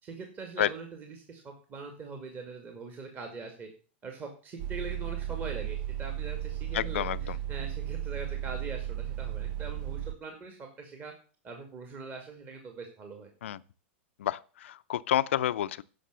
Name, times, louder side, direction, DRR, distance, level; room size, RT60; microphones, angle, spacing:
voice 1, 0.0-3.7 4.0-11.1 11.4-13.3, right 4 dB, 30° right, 2.2 m, -42 dB
sound 1, 4.6-10.1, right 11 dB, 50° right, 0.6 m, -35 dB
voice 2, 6.7-7.4 13.4-13.6 14.2-15.8, left 12 dB, 80° left, 0.5 m, -29 dB
10.0 x 6.0 x 6.7 m
hypercardioid pair, 130°, 7 cm